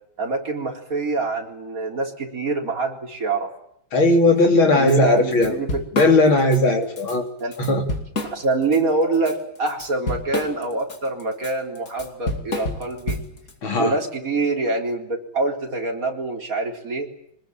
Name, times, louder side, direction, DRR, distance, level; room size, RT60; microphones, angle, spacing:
voice 1, 0.2-3.5 4.7-5.8 7.4-7.5 8.3-13.2 13.8-17.1, right 3 dB, 45° right, 1 dB, 4.4 m, -25 dB
voice 2, 3.9-5.6 5.9-7.2 7.6-7.8 13.6-13.9, left 2 dB, 85° left, 4 dB, 4.1 m, -17 dB
Drum kit / Drum, 4.9-5.0 5.3-6.6 7.0-7.2 7.5-8.8 9.1-13.5, left 2 dB, 45° left, 3.2 m, -29 dB
24.5 x 20.5 x 9.1 m, 0.71 s
omnidirectional pair, 2.2 m